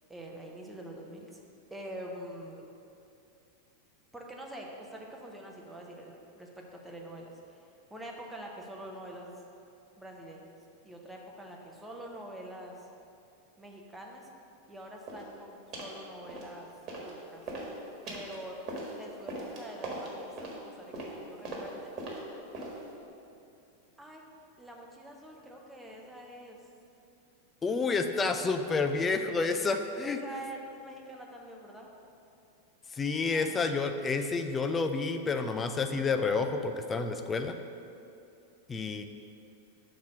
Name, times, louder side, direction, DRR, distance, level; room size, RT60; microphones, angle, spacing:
voice 1, 0.1-1.4 1.7-2.6 4.1-9.3 10.0-10.6 10.8-12.9 13.6-14.3 14.7-16.7 17.0-17.4 18.1-18.6 19.0-21.9 24.0-24.3 24.6-26.6 30.0-31.9 33.3-33.8, right 1 dB, 5° right, -1 dB, 0.9 m, -45 dB
sound 1, 15.1-15.3 15.7-16.0 16.3-17.1 17.4-23.0, right 2 dB, 35° right, 1.5 m, -40 dB
voice 2, 27.6-30.2 32.9-37.6 38.7-39.0, left 4 dB, 20° left, 7 dB, 0.4 m, -29 dB
6.0 x 4.3 x 6.2 m, 2.6 s
figure-of-eight pair, 90°, 0 cm